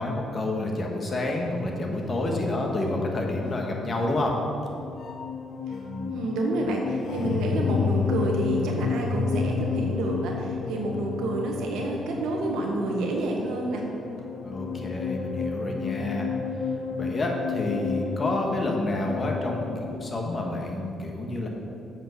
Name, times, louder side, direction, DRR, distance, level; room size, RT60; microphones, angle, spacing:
voice 1, 0.0-4.4 5.7-6.2 14.4-16.3 17.0-21.5, left 2 dB, 35° left, 1 dB, 1.3 m, -29 dB
sound 1, 1.9-20.7, left 6 dB, 60° left, 0.7 m, -32 dB
voice 2, 6.0-13.8, right 2 dB, 85° right, 0 dB, 1.3 m, -29 dB
7.7 x 4.6 x 6.6 m, 2.6 s
cardioid pair, 90°, 0 cm